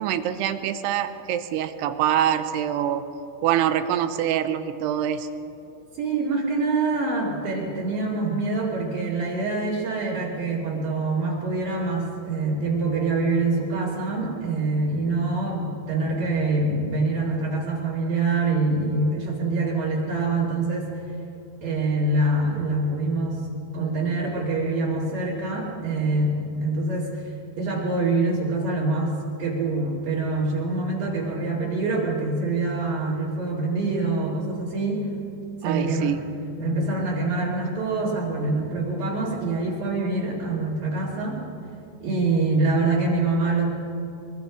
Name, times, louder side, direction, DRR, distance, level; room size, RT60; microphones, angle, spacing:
voice 1, 0.0-3.0 3.4-5.3 35.6-36.3, right 10 dB, 80° right, 10 dB, 2.8 m, -25 dB
voice 2, 5.9-20.9 21.6-23.5 23.7-35.1 35.6-36.2 36.6-41.4 42.0-43.6, right 3 dB, 55° right, -7 dB, 4.0 m, -25 dB
23.0 x 23.0 x 5.1 m, 2.8 s
omnidirectional pair, 5.0 m